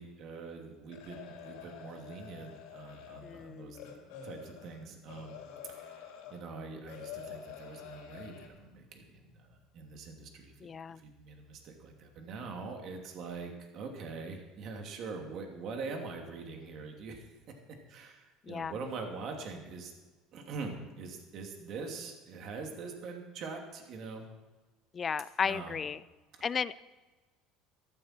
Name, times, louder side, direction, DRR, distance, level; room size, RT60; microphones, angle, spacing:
voice 1, 0.0-5.4 5.7-5.9 6.3-17.2 17.9-19.9 20.3-24.2 25.4-25.8, right 4 dB, 50° right, 2 dB, 2.7 m, -43 dB
sound 1, 0.9-6.4 6.9-8.5, left 8 dB, 85° left, 3.5 m, -48 dB
voice 2, 3.2-4.0 10.6-11.0 18.5-18.7 24.9-26.0 26.4-26.8, left 6 dB, 25° left, 17 dB, 0.4 m, -34 dB
14.5 x 14.0 x 4.5 m, 1.2 s
cardioid pair, 130°, 0 cm